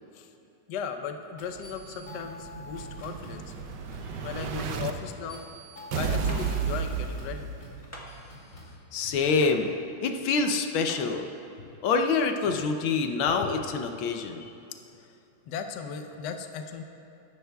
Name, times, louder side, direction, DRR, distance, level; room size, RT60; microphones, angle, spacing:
voice 1, 0.7-3.4 4.2-5.4 5.9-7.5 8.3-8.4 9.0-9.2 11.7-11.8 13.4-13.5 14.4-14.5 15.0-15.2 15.5-16.8, left 6 dB, 65° left, 6 dB, 1.2 m, -37 dB
sound 1, 1.4-8.8, left 1 dB, 40° left, 2.6 m, -48 dB
Explosion, 1.6-4.9 5.9-7.9, right 6 dB, 65° right, 1.2 m, -32 dB
sound 2, 6.3-6.5 7.9-8.1 9.4-9.6 10.9-11.0, left 1 dB, 10° left, 1.1 m, -42 dB
voice 2, 8.9-9.7 10.0-11.3 11.8-14.5, left 4 dB, 85° left, 5 dB, 1.5 m, -26 dB
21.0 x 11.0 x 2.3 m, 2.8 s
omnidirectional pair, 2.2 m